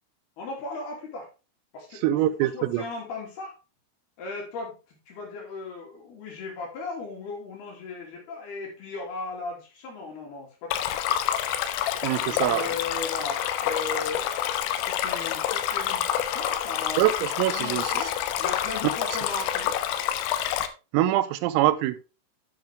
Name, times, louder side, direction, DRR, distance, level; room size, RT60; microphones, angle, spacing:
voice 1, 0.4-1.3 1.7-2.0 2.4-3.6 4.2-11.2 12.3-14.5 14.8-17.1 17.5-19.8, left 3 dB, 55° left, 4.5 m, -37 dB
voice 2, 2.0-2.8 12.0-12.8 17.0-18.1 20.9-22.0, right 14 dB, 85° right, 3.3 m, -24 dB
Stream, 10.7-20.7, left 10 dB, 85° left, 3.3 m, -28 dB
9.5 x 7.5 x 3.5 m
omnidirectional pair, 5.9 m